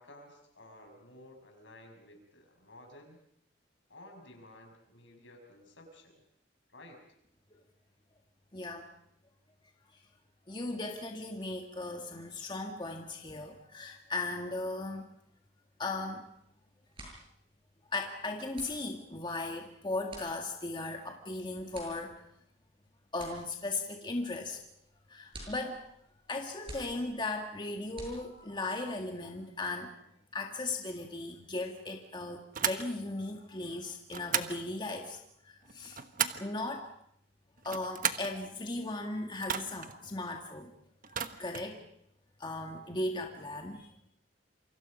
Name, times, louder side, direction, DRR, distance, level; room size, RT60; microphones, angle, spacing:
voice 1, 0.0-3.2 3.9-6.2 6.7-7.0, left 1 dB, 75° left, 3 dB, 6.6 m, -54 dB
voice 2, 8.5-8.9 10.5-15.1 15.8-16.2 17.1-17.2 17.9-22.1 23.1-24.6 25.1-25.8 26.3-29.9 30.3-35.2 35.4-36.0 36.4-36.9 37.6-40.7 41.1-41.2 41.4-41.8 42.4-43.9, left 2 dB, 25° left, 3 dB, 1.9 m, -37 dB
sound 1, 16.4-16.5 16.8-28.7, right 1 dB, 30° right, 7.7 m, -52 dB
sound 2, 32.5-32.9 34.1-34.6 35.7-36.5 37.6-38.3 39.4-39.9 41.0-41.7, right 8 dB, 45° right, 1.3 m, -34 dB
28.5 x 25.0 x 5.4 m, 0.70 s
head